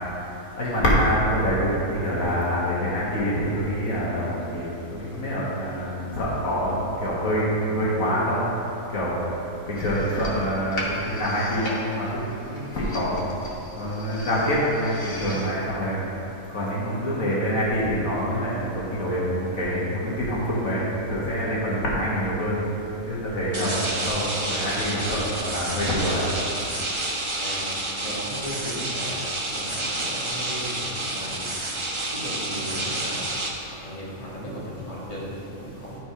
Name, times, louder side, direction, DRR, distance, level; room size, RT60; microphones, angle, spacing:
voice 1, 0.6-8.4 8.9-9.2 9.7-13.2 13.8-16.0 16.5-22.6 23.1-26.3, equal, 70° left, -6 dB, 1.8 m, -26 dB
sound 1, 9.8-15.5, left 1 dB, 45° left, 1.3 m, -36 dB
sound 2, 23.5-33.5, right 2 dB, 30° right, 0.7 m, -29 dB
voice 2, 27.4-29.3 29.5-31.7 32.1-33.2 33.7-36.0, equal, 25° left, -8 dB, 1.9 m, -36 dB
11.0 x 4.5 x 4.9 m, 2.9 s
omnidirectional pair, 1.5 m